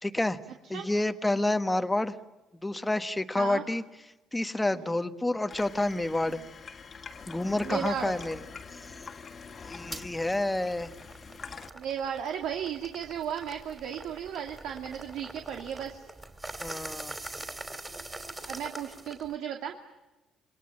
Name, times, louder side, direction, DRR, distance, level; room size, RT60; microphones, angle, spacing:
voice 1, 0.0-0.4 0.7-2.1 2.6-3.8 4.3-6.4 7.3-8.4 9.7-10.9 16.6-17.1, left 2 dB, 10° left, 9 dB, 1.3 m, -29 dB
Water tap faucet / Sink (filling or washing), 5.5-11.7, left 5 dB, 35° left, 2.0 m, -45 dB
voice 2, 7.6-8.1 11.7-16.0 18.5-19.8, right 9 dB, 75° right, 3 dB, 2.4 m, -35 dB
sound 1, 9.9-10.1 10.6-19.4, right 2 dB, 15° right, 3.0 m, -43 dB
27.5 x 23.0 x 8.7 m, 1.1 s
cardioid pair, 130°, 0 cm